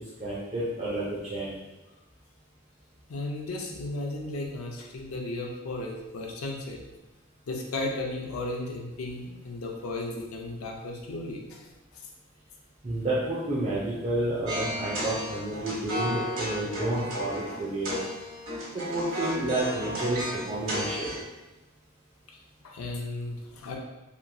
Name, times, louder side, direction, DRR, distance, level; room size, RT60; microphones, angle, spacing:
voice 1, 0.2-1.5 12.8-18.0 18.7-21.2, right 1 dB, 30° right, -8 dB, 0.4 m, -30 dB
voice 2, 3.1-6.8 7.5-11.7 22.3-22.4 22.6-23.8, left 2 dB, 85° left, 1 dB, 0.5 m, -35 dB
sound 1, 14.5-21.2, equal, 75° right, 1.2 m, -34 dB
2.9 x 2.6 x 2.2 m, 1.0 s
head